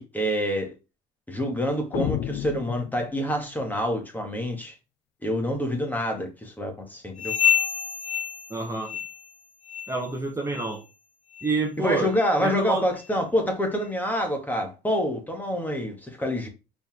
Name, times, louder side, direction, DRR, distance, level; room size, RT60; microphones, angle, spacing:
voice 1, 0.1-0.7 1.3-4.8 5.2-7.3 11.8-16.5, equal, 10° left, 2.2 m, -27 dB
sound 1, 1.9-3.5, left 12 dB, 70° left, 0.5 m, -31 dB
sound 2, 7.2-9.4 9.6-10.0 10.5-10.7 11.3-11.5 12.2-12.3 13.0-13.1, left 8 dB, 40° left, 1.6 m, -28 dB
voice 2, 8.5-9.0 9.9-10.8 11.4-12.1 12.4-12.9, right 3 dB, 15° right, 1.5 m, -28 dB
5.3 x 4.9 x 3.6 m
cardioid pair, 110°, 17 cm